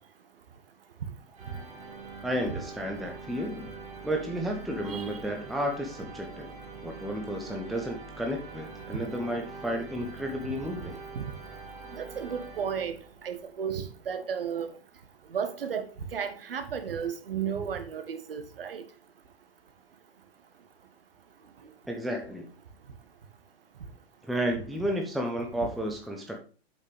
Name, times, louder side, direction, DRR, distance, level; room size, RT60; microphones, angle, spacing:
sound 1, 1.4-13.3, right 4 dB, 20° right, 1.9 m, -44 dB
voice 1, 2.2-3.7 4.0-6.5 6.8-11.0 21.9-22.5 24.2-26.4, equal, ahead, 0.6 m, -32 dB
voice 2, 11.9-14.7 15.3-18.8, right 7 dB, 60° right, 1.5 m, -34 dB
8.1 x 6.5 x 3.3 m
figure-of-eight pair, 115°, 33 cm